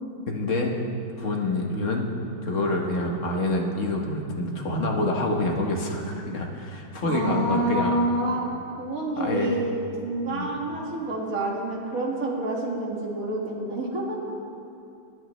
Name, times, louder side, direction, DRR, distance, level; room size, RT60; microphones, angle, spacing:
voice 1, 0.3-0.7 1.2-2.1 2.4-8.0 9.2-9.6 10.3-10.5, left 2 dB, 50° left, 1 dB, 1.6 m, -27 dB
voice 2, 7.0-8.5 8.8-9.7 10.0-14.4, right 1 dB, 55° right, -3 dB, 2.4 m, -28 dB
26.5 x 8.9 x 3.2 m, 2.6 s
omnidirectional pair, 1.8 m